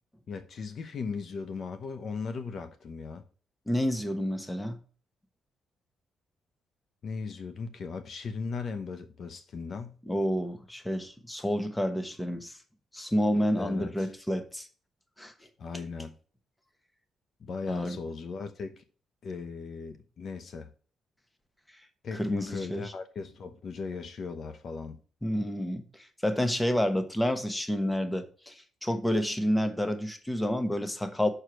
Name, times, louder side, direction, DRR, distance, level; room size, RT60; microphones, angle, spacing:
voice 1, 0.3-3.2 7.0-10.0 13.6-14.1 15.6-16.1 17.4-18.8 19.2-20.7 22.0-25.0, left 5 dB, 55° left, 0.8 m, -37 dB
voice 2, 3.7-4.8 10.1-12.6 12.9-14.7 15.2-15.3 17.7-18.0 22.1-22.9 25.2-31.3, equal, 10° left, 1.1 m, -29 dB
6.5 x 4.7 x 6.2 m
cardioid pair, 90°, 0 cm